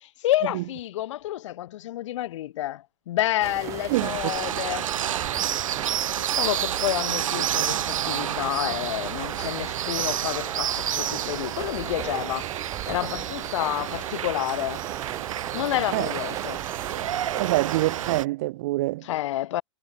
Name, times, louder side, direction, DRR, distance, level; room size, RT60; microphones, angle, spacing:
voice 1, 0.0-4.9 6.3-12.5 12.9-14.9 15.5-16.6 19.0-19.6, left 14 dB, 70° left, 0.5 m, -29 dB
sound 1, 3.4-18.2, right 14 dB, 20° right, 0.8 m, -37 dB
voice 2, 3.9-4.3 15.9-16.1 17.4-19.1, right 18 dB, 35° right, 0.4 m, -25 dB
sound 2, 3.9-18.2, right 10 dB, 90° right, 2.0 m, -30 dB
supercardioid pair, 170°, 16 cm